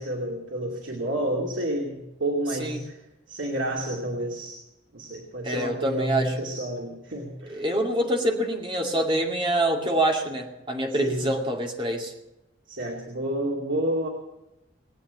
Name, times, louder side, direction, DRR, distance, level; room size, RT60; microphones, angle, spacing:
voice 1, 0.0-3.0 3.3-4.6 4.9-7.6 10.9-11.3 12.7-14.1, right 1 dB, 85° right, 0 dB, 2.6 m, -30 dB
voice 2, 5.4-6.3 7.5-12.1, right 1 dB, 25° right, 1 dB, 2.4 m, -26 dB
20.5 x 8.6 x 8.2 m, 0.95 s
head